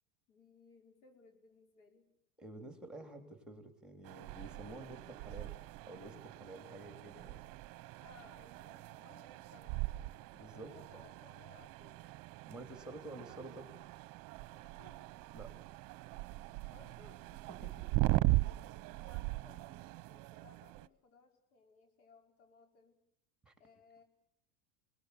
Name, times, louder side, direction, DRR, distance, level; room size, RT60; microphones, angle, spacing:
voice 1, 0.3-2.1 7.9-9.9 10.5-12.0 14.5-15.1 16.7-18.2 18.9-23.0 23.6-24.0, left 4 dB, 75° left, 3 dB, 5.8 m, -63 dB
voice 2, 2.4-5.5 5.8-7.4 10.3-10.7 12.5-13.7 15.3-15.6 17.5-17.7 23.4-23.5, right 2 dB, ahead, 6 dB, 3.6 m, -50 dB
sound 1, 4.0-20.9, right 21 dB, 50° right, 0.9 m, -39 dB
26.5 x 20.0 x 8.5 m, 0.74 s
supercardioid pair, 105°, 44 cm